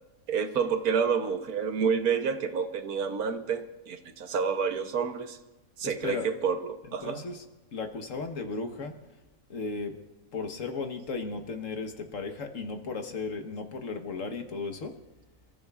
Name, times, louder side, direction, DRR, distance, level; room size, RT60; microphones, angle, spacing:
voice 1, 0.3-5.4 5.8-7.2, right 6 dB, 75° right, 8 dB, 1.4 m, -29 dB
voice 2, 5.8-6.3 7.0-7.4 7.7-9.0 9.5-10.0 10.3-15.0, left 4 dB, 60° left, 5 dB, 1.5 m, -35 dB
28.5 x 14.5 x 2.4 m, 1.1 s
omnidirectional pair, 1.6 m